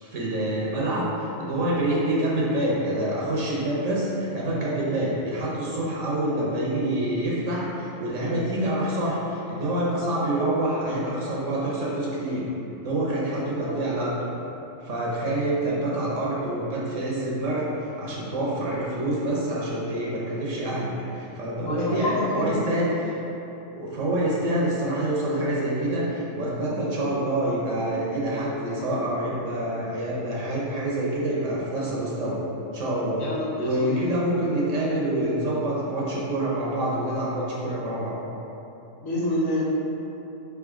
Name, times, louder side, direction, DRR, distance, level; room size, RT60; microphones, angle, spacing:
voice 1, 0.0-12.4 12.8-14.1 14.8-17.7 18.0-22.9 23.7-32.4 32.7-33.3 33.5-38.2, right 1 dB, 70° right, -5 dB, 1.1 m, -26 dB
voice 2, 21.6-22.9 33.2-34.0 39.0-39.6, left 1 dB, 85° left, -7 dB, 1.4 m, -28 dB
3.8 x 3.6 x 3.6 m, 2.9 s
omnidirectional pair, 1.4 m